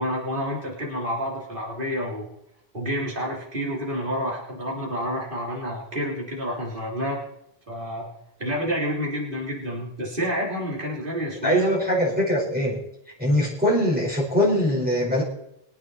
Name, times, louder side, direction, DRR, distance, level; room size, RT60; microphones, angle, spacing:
voice 1, 0.0-2.3 2.7-7.2 7.7-8.1 8.4-11.7, equal, 55° right, -3 dB, 3.7 m, -29 dB
voice 2, 11.4-12.8 13.2-15.2, left 1 dB, 10° right, -5 dB, 4.6 m, -22 dB
24.0 x 8.7 x 4.2 m, 0.78 s
omnidirectional pair, 1.1 m